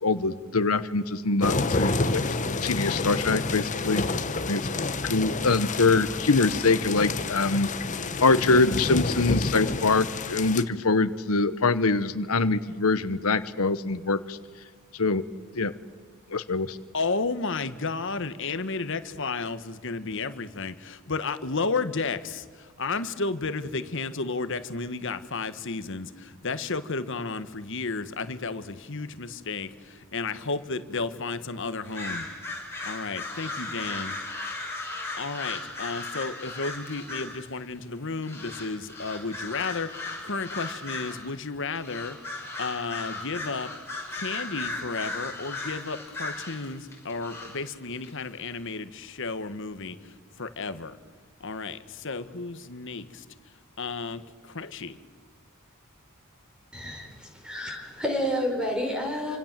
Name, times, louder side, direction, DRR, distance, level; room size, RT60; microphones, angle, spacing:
voice 1, 0.0-2.2 2.6-4.0 4.5-4.6 5.0-7.7 8.2-14.4 14.9-15.2 15.5-15.7 16.3-16.8, left 3 dB, 80° left, 13 dB, 1.1 m, -24 dB
sound 1, 1.4-10.6, left 3 dB, 35° left, 1.1 m, -29 dB
voice 2, 16.9-32.3 32.8-34.2 35.2-42.2 42.6-43.7 44.1-51.0 51.4-53.2 53.8-55.0, left 4 dB, 60° left, 11 dB, 1.4 m, -32 dB
sound 2, 31.8-37.5 38.2-41.3 41.8-47.7 48.0-48.1, left 2 dB, 10° left, 5.9 m, -36 dB
voice 3, 56.7-59.4, equal, 5° right, 2 dB, 4.9 m, -30 dB
28.5 x 26.0 x 7.6 m, 1.5 s
head